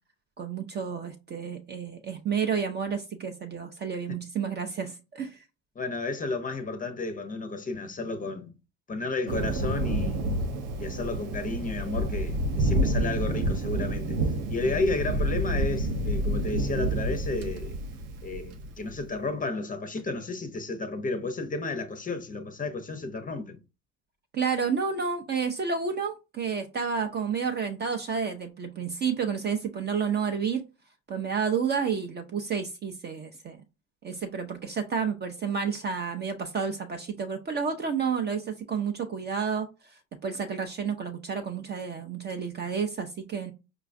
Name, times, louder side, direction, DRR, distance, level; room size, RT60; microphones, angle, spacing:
voice 1, 0.4-5.4 24.3-30.6 31.1-33.6 34.0-39.7 40.2-43.5, right 6 dB, 25° right, 0.4 m, -30 dB
voice 2, 5.8-8.5 8.9-10.2 10.8-14.2 14.5-17.8 18.2-23.6, left 3 dB, 20° left, 0.6 m, -32 dB
Thunder, 9.3-18.9, right 1 dB, 85° right, 0.7 m, -29 dB
4.8 x 2.2 x 2.5 m
hypercardioid pair, 80°, 40 cm